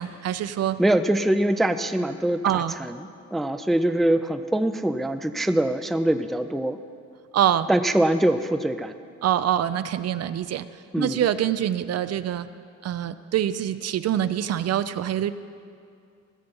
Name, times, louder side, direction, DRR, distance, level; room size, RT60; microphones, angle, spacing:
voice 1, 0.0-0.8 2.4-2.7 7.3-7.7 9.2-10.7 11.0-12.5 12.8-15.3, right 11 dB, 55° right, 13 dB, 0.5 m, -25 dB
voice 2, 0.8-6.8 7.7-8.9 10.9-11.2, right 1 dB, ahead, 9 dB, 0.4 m, -23 dB
15.5 x 6.8 x 5.4 m, 2.3 s
cardioid pair, 90°, 30 cm